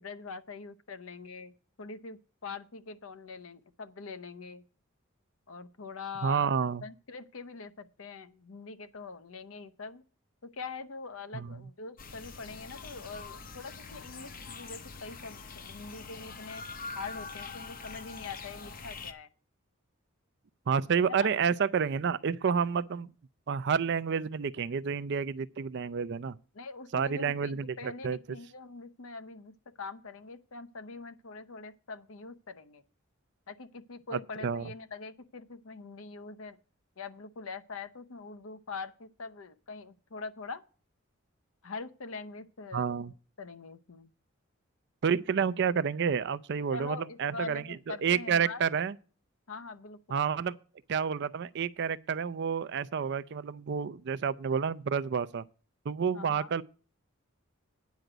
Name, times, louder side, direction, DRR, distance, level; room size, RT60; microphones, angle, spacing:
voice 1, 0.0-1.5 1.8-4.6 5.5-6.5 6.8-10.0 10.5-16.6 16.9-19.3 21.1-21.3 26.5-32.8 33.5-36.6 37.0-40.6 41.6-44.1 46.7-48.6 49.5-50.2 56.1-56.5, left 4 dB, 75° left, 0.8 m, -43 dB
voice 2, 6.2-6.8 11.3-11.5 20.7-23.1 23.5-26.4 26.9-28.2 34.1-34.7 42.7-43.1 45.0-48.9 50.1-50.5 50.9-55.4 55.9-56.6, right 6 dB, 55° right, 0.4 m, -29 dB
sound 1, 12.0-19.1, left 4 dB, 45° left, 0.8 m, -44 dB
9.3 x 5.0 x 7.8 m
head